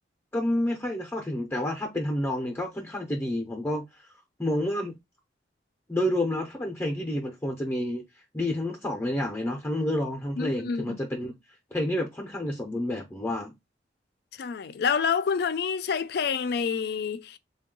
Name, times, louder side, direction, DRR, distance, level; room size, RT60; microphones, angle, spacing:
voice 1, 0.3-3.8 4.4-4.9 5.9-8.0 8.3-11.3 11.7-13.5, left 1 dB, 15° left, 0.6 m, -29 dB
voice 2, 10.4-11.0 14.3-17.4, left 6 dB, 60° left, 0.4 m, -28 dB
3.6 x 2.2 x 3.7 m
head